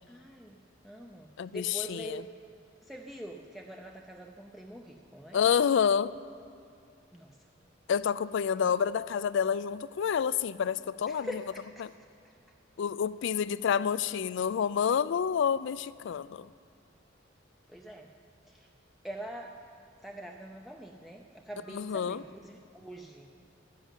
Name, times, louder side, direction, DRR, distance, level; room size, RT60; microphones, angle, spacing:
voice 1, 0.1-2.3 2.8-5.4 7.1-7.5 8.5-8.8 11.1-11.9 12.2-12.6 17.7-18.1 18.5-18.7 19.0-19.7 20.0-23.3, right 1 dB, ahead, 1 dB, 0.5 m, -45 dB
voice 2, 1.4-2.2 5.3-6.1 7.9-11.3 12.8-16.5 21.7-22.2, left 7 dB, 65° left, 17 dB, 0.3 m, -28 dB
11.5 x 10.5 x 7.5 m, 2.5 s
head